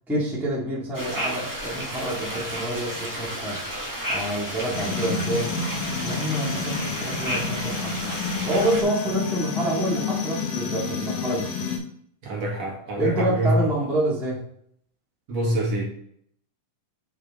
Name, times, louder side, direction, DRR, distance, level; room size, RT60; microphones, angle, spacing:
voice 1, 0.1-3.6 4.1-5.5 6.0-7.9 8.4-11.5 13.0-14.4, right 1 dB, ahead, -6 dB, 1.5 m, -27 dB
sound 1, 0.9-8.8, equal, 25° right, 0.4 m, -32 dB
sound 2, 4.7-11.8, left 5 dB, 85° left, 3.0 m, -29 dB
voice 2, 12.2-13.6 15.3-15.8, right 1 dB, 60° right, -3 dB, 2.6 m, -25 dB
6.8 x 4.7 x 3.7 m, 0.67 s
omnidirectional pair, 3.6 m